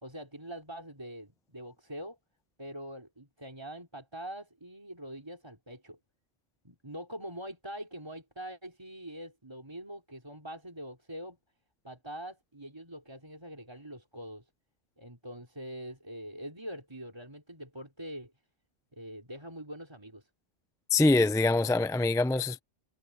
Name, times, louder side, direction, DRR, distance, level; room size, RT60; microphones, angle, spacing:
voice 1, 0.0-2.2 2.6-6.0 6.6-11.4 11.8-14.4 15.0-18.3 18.9-20.3, equal, 20° right, 3.7 m, -44 dB
voice 2, 20.9-22.6, left 2 dB, 5° left, 0.3 m, -24 dB
omnidirectional pair, 1.3 m